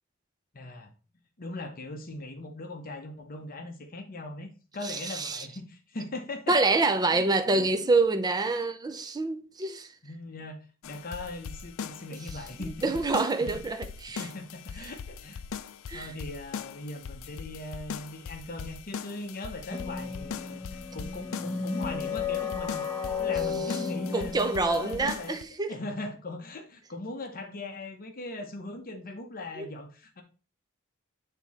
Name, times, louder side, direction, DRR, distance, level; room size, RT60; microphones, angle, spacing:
voice 1, 0.5-0.9 1.4-7.2 7.5-7.9 10.0-13.2 14.2-15.4 15.9-25.4 25.7-30.2, left 2 dB, 45° left, 0.8 m, -40 dB
voice 2, 4.8-5.5 6.5-9.9 12.6-14.3 15.9-16.1 23.7-23.8 24.1-25.7 29.6-29.7, right 3 dB, 20° right, 0.5 m, -27 dB
sound 1, 10.8-25.4, left 6 dB, 65° left, 0.4 m, -41 dB
sound 2, 19.7-25.1, left 5 dB, 15° left, 0.9 m, -33 dB
6.7 x 3.7 x 4.1 m
head